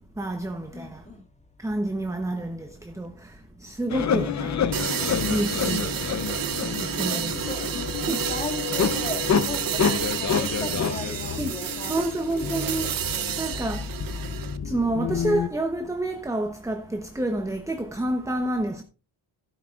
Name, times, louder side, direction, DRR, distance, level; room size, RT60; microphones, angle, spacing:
voice 1, 0.2-1.1 1.6-4.7 5.3-6.1 6.6-7.5 8.1-8.3 9.8-10.0 11.4-11.6 11.9-13.0 13.4-13.9 14.6-18.8, right 1 dB, 5° right, 0.9 m, -29 dB
voice 2, 0.7-1.3 3.9-4.0 7.0-12.0 12.4-13.5, left 2 dB, 15° left, 2.2 m, -38 dB
sound 1, 3.9-15.5, left 7 dB, 35° left, 0.8 m, -28 dB
sound 2, 4.7-14.6, right 10 dB, 45° right, 0.8 m, -30 dB
12.5 x 10.5 x 2.5 m
cardioid pair, 95°, 49 cm